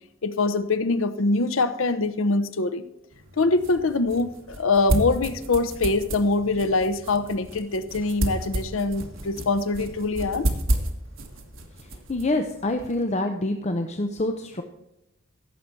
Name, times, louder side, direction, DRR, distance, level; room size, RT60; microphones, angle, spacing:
voice 1, 0.2-2.9 3.4-10.5, left 3 dB, 80° left, 13 dB, 0.7 m, -24 dB
sound 1, 3.1-13.0, right 1 dB, 80° right, 1.7 m, -32 dB
voice 2, 11.8-14.6, left 2 dB, 35° left, 6 dB, 0.7 m, -27 dB
16.0 x 6.8 x 4.5 m, 0.86 s
head